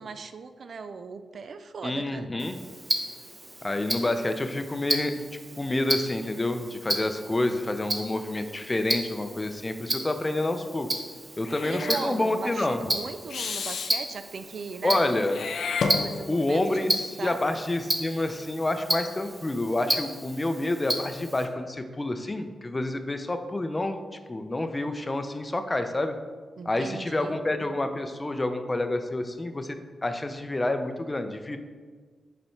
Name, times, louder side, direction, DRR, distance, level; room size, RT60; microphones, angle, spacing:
voice 1, 0.0-2.3 11.6-15.0 16.0-17.4 26.6-27.4, right 5 dB, 65° right, 10 dB, 0.4 m, -38 dB
voice 2, 1.8-2.6 3.6-5.1 5.6-11.0 11.4-13.0 14.8-15.4 16.3-24.0 24.3-26.1 26.7-29.8 30.0-31.6, left 2 dB, 25° left, 8 dB, 0.5 m, -28 dB
Tick-tock, 2.4-21.5, right 1 dB, 25° right, 0.8 m, -33 dB
Meow / Hiss, 11.4-12.1 13.3-13.9 15.3-16.5, left 5 dB, 75° left, 0.5 m, -31 dB
5.5 x 4.1 x 4.5 m, 1.5 s
cardioid pair, 75°, 0 cm